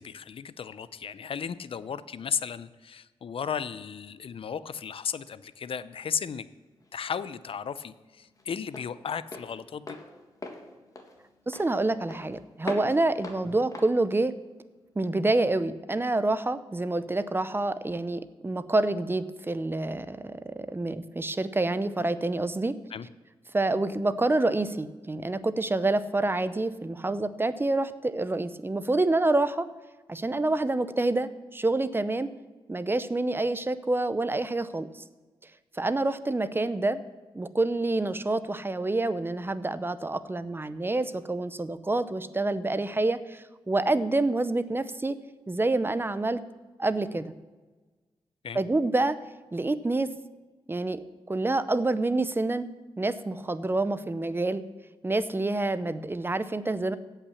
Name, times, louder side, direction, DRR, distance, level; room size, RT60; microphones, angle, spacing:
voice 1, 0.0-6.5 6.9-10.0 22.9-23.1 48.4-48.6, left 7 dB, 65° left, 15 dB, 0.5 m, -35 dB
Walk footsteps, 6.5-15.1, left 2 dB, 35° left, 1.8 m, -43 dB
voice 2, 11.5-14.3 15.0-22.7 23.5-29.7 30.1-32.3 32.7-35.0 35.7-37.0 37.3-45.2 45.5-46.4 46.8-47.3 48.5-49.2 49.5-50.1 50.7-51.0 51.3-52.7 53.0-54.6 55.0-57.0, right 2 dB, 20° right, 14 dB, 0.6 m, -27 dB
16.5 x 5.7 x 7.1 m, 1.3 s
wide cardioid pair, 90°, 10 cm